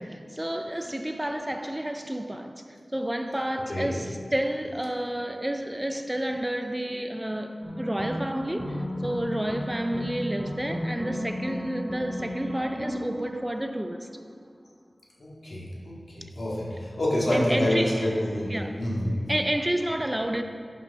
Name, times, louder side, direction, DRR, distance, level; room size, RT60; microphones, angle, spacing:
voice 1, 0.0-14.1 17.3-18.1 18.5-18.8 19.3-20.4, right 1 dB, 15° right, 0.5 m, -30 dB
sound 1, 7.6-14.2, equal, 5° left, 2.0 m, -34 dB
voice 2, 15.2-16.7 17.0-18.5 18.8-19.1, left 1 dB, 70° left, 2.1 m, -27 dB
10.0 x 5.2 x 6.0 m
wide cardioid pair, 50°, 0 cm